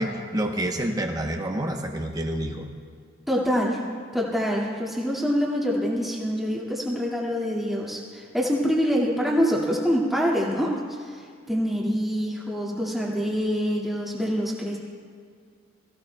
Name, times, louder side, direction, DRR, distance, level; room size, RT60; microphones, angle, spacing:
voice 1, 0.0-2.7, right 1 dB, 20° right, 3 dB, 0.9 m, -28 dB
voice 2, 3.3-3.8 4.1-10.7 11.5-14.8, equal, ahead, -5 dB, 2.0 m, -25 dB
22.5 x 15.5 x 2.3 m, 2.1 s
head